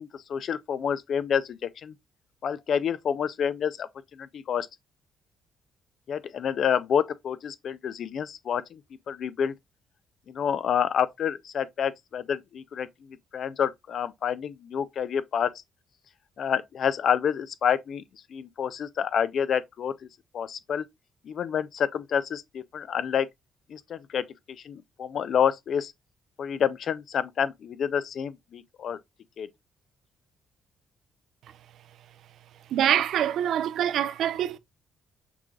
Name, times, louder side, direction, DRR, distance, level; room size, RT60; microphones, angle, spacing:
voice 1, 0.0-1.9 2.4-3.9 4.1-4.7 6.1-8.8 9.1-9.5 10.3-12.9 13.3-15.5 16.4-18.0 18.3-19.9 20.3-20.8 21.3-23.3 23.7-24.2 24.6-25.9 26.4-29.0 29.4-29.5, left 8 dB, 60° left, 0.4 m, -28 dB
voice 2, 32.7-34.6, right 10 dB, 75° right, 0.4 m, -25 dB
5.9 x 3.2 x 2.3 m
cardioid pair, 90°, 0 cm